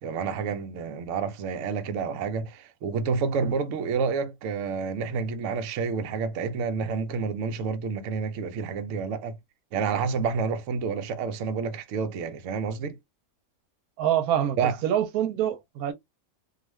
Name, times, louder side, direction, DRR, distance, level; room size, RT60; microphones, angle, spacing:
voice 1, 0.0-9.4 9.7-13.0 14.6-14.8, right 5 dB, 65° right, 0.8 m, -29 dB
voice 2, 14.0-15.9, right 10 dB, 85° right, 1.1 m, -26 dB
2.4 x 2.4 x 3.0 m
omnidirectional pair, 1.5 m